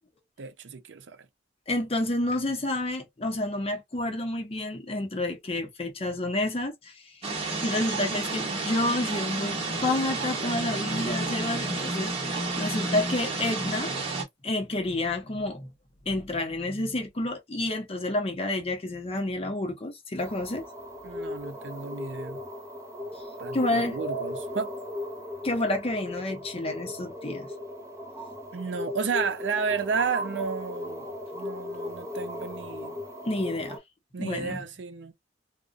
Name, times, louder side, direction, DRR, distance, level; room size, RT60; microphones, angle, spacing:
voice 1, 0.4-1.3 21.0-22.4 23.4-24.7 28.5-31.1 31.3-33.0 34.1-35.1, right 5 dB, 75° right, 0.5 m, -32 dB
voice 2, 1.7-7.2 7.6-12.1 12.6-13.9 14.4-15.7 16.1-20.7 23.5-24.0 25.4-27.5 33.2-33.8 34.2-34.6, left 2 dB, 35° left, 0.6 m, -29 dB
sound 1, 7.2-14.2, right 3 dB, 35° right, 1.1 m, -30 dB
sound 2, 20.2-33.8, left 1 dB, 15° right, 0.7 m, -37 dB
2.4 x 2.0 x 2.4 m
head